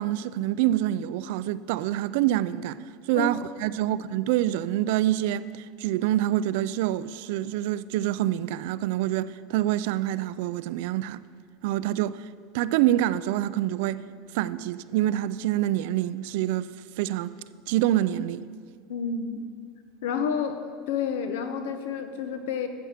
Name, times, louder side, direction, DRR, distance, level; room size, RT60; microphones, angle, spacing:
voice 1, 0.0-2.8 3.1-11.2 11.6-12.2 12.5-14.0 14.3-16.7 17.0-17.3 17.7-18.4, right 13 dB, 65° right, 0.4 m, -26 dB
voice 2, 18.9-19.4 20.0-20.6 20.9-22.7, left 6 dB, 80° left, 1.0 m, -29 dB
13.0 x 7.8 x 5.0 m
supercardioid pair, 160°, 0 cm